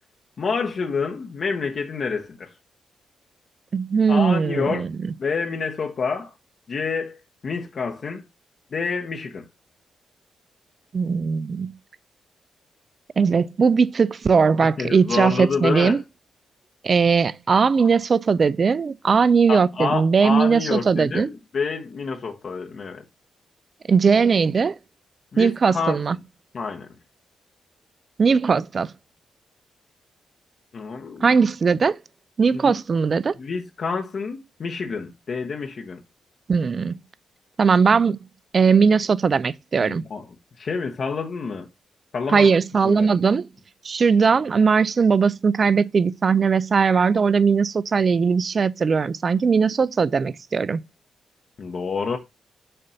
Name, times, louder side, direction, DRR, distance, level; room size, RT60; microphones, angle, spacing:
voice 1, 0.4-2.5 4.1-4.9 5.2-6.3 6.7-7.2 7.4-8.2 8.7-9.5 14.8-16.0 19.5-23.0 25.3-26.0 26.5-26.9 30.7-31.4 32.5-32.7 33.4-36.0 39.8-40.2 40.6-41.7 42.1-42.5 42.8-43.2 51.6-52.2, left 5 dB, 55° left, 0.9 m, -28 dB
voice 2, 3.7-5.1 10.9-11.7 13.2-16.0 16.8-21.3 23.9-24.8 25.4-26.2 28.2-28.9 31.2-32.0 32.4-33.3 36.5-37.0 37.6-38.2 38.5-40.0 42.3-43.5 43.8-50.8, right 5 dB, 50° right, 0.3 m, -19 dB
6.7 x 2.6 x 5.5 m
supercardioid pair, 60°, 0 cm